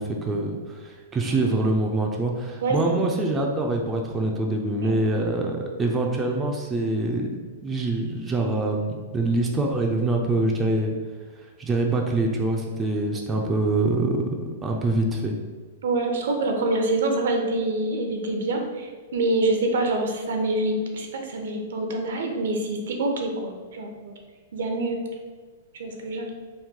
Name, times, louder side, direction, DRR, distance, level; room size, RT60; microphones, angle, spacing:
voice 1, 0.0-7.3 7.6-10.9 11.6-15.4, right 2 dB, 15° right, 0 dB, 0.3 m, -25 dB
voice 2, 15.8-24.1 24.5-25.0 25.7-26.3, right 2 dB, 75° right, 3 dB, 0.6 m, -26 dB
3.0 x 2.2 x 3.6 m, 1.5 s
hypercardioid pair, 135°, 0 cm